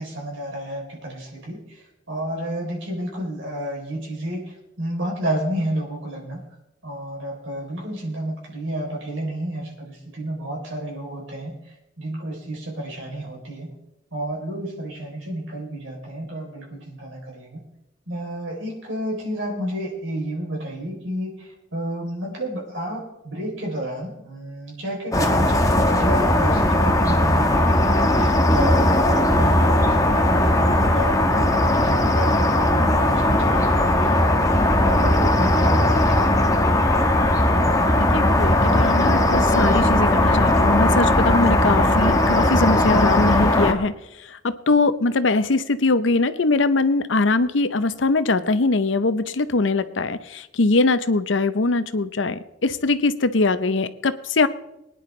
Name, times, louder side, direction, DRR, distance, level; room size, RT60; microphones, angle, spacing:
voice 1, 0.0-6.4 6.8-11.6 12.0-13.7 14.1-17.6 18.1-30.4 30.9-34.2 34.8-36.7, right 1 dB, 80° right, -1 dB, 3.6 m, -31 dB
sound 1, 25.1-43.7, left 1 dB, 20° left, 1.1 m, -18 dB
voice 2, 38.0-43.9 44.3-54.5, left 3 dB, 75° left, 13 dB, 0.7 m, -22 dB
21.5 x 10.0 x 3.2 m, 0.89 s
head